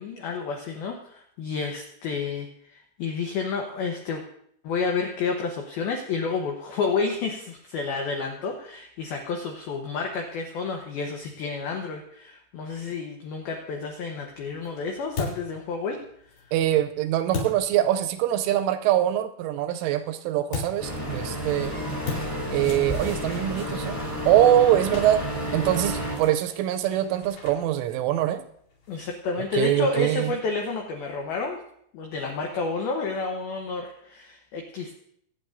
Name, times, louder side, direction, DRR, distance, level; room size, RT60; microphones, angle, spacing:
voice 1, 0.0-4.2 4.6-16.0 28.9-31.6 31.9-34.9, left 4 dB, 85° left, 2 dB, 2.1 m, -30 dB
sound 1, 14.0-18.4 20.5-29.3, left 3 dB, 55° left, 4.1 m, -40 dB
voice 2, 16.5-21.7 22.5-24.0 24.3-25.3 25.5-28.4 29.6-30.3, right 12 dB, 85° right, 9 dB, 3.0 m, -23 dB
sound 2, 20.8-26.2, equal, 10° left, 1.1 m, -31 dB
23.5 x 9.1 x 2.6 m, 0.69 s
omnidirectional pair, 5.8 m